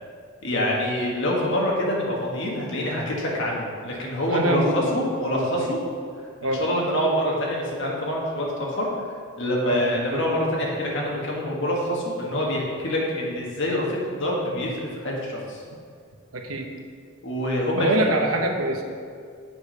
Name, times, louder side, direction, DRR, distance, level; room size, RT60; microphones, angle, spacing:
voice 1, 0.4-5.8 6.4-8.9 9.4-15.6 17.2-18.1, equal, 60° left, -3 dB, 1.6 m, -26 dB
voice 2, 4.3-5.0 5.6-5.8 6.4-6.6 9.6-9.8 10.1-10.2 16.3-16.7 17.7-18.8, right 1 dB, 80° right, 3 dB, 0.9 m, -25 dB
6.9 x 5.1 x 5.5 m, 2.2 s
head